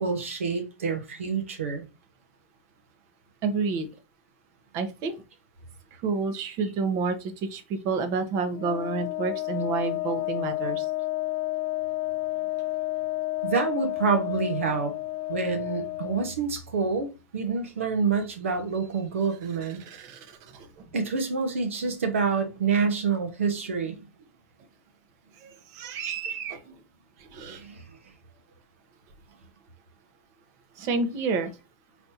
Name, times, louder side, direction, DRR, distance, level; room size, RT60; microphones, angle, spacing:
voice 1, 0.0-1.9 6.6-6.7 13.4-14.9 15.3-19.8 20.9-24.0 27.5-28.0, right 5 dB, 85° right, 1.3 m, -27 dB
voice 2, 3.4-3.9 4.7-5.1 6.0-10.8 19.8-20.7 25.4-26.7 27.2-27.6 30.8-31.5, right 4 dB, 50° right, 1.1 m, -29 dB
Wind instrument woodwind instrument, 8.5-16.3, left 18 dB, 60° left, 0.6 m, -31 dB
4.3 x 4.1 x 2.9 m
hypercardioid pair, 105°, 7 cm